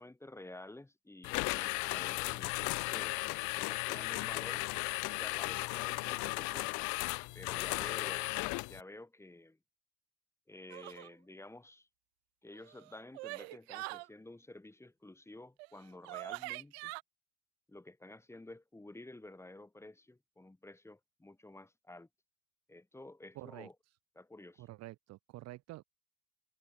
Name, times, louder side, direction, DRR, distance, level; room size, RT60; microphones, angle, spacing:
voice 1, 0.0-4.6 5.2-6.9 7.3-8.3 8.7-9.6 10.5-11.9 12.4-16.9 17.7-22.1 22.7-23.7 24.2-24.6, left 2 dB, 5° left, 5.9 m, -51 dB
sound 1, 1.2-8.8, left 29 dB, 55° left, 1.8 m, -36 dB
sound 2, 10.7-11.1 12.5-14.1 15.6-15.7 16.0-17.0, right 27 dB, 65° right, 3.0 m, -43 dB
voice 2, 23.3-23.7 24.6-25.8, right 17 dB, 50° right, 1.9 m, -48 dB
hypercardioid pair, 80°, 35 cm